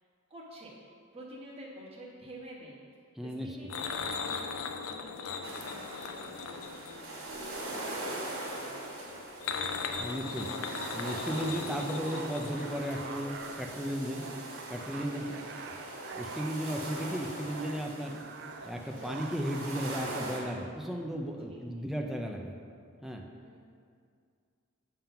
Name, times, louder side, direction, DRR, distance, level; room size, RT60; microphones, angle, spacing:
voice 1, 0.3-2.8 3.2-9.2 15.1-15.5 21.4-21.8 23.4-23.7, right 1 dB, 30° right, -5 dB, 1.2 m, -50 dB
voice 2, 3.2-3.5 10.0-10.5 10.9-14.2 14.7-15.3 16.1-18.2 18.7-22.5 23.0-23.2, equal, ahead, 0 dB, 0.5 m, -35 dB
sound 1, 3.7-7.9 9.1-13.4 13.6-13.8 14.1-14.2, left 5 dB, 75° left, 0.4 m, -38 dB
sound 2, 5.4-20.4, right 1 dB, 85° right, 1.6 m, -42 dB
sound 3, 10.6-20.7, right 5 dB, 55° right, 0.4 m, -45 dB
7.3 x 3.7 x 5.6 m, 2.2 s
head